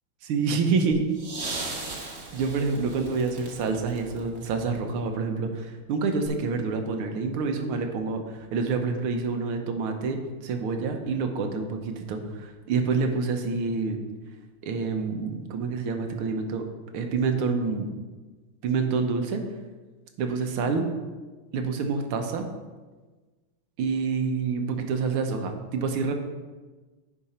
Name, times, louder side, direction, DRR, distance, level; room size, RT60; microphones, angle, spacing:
voice 1, 0.2-1.1 1.7-14.0 14.6-16.6 16.9-17.9 18.6-19.4 20.2-20.9 21.5-22.5 23.8-26.1, right 4 dB, 85° right, 5 dB, 1.8 m, -27 dB
sound 1, 1.1-5.1 6.2-6.3, right 2 dB, 40° right, 1.2 m, -38 dB
10.5 x 4.9 x 4.3 m, 1.3 s
omnidirectional pair, 2.3 m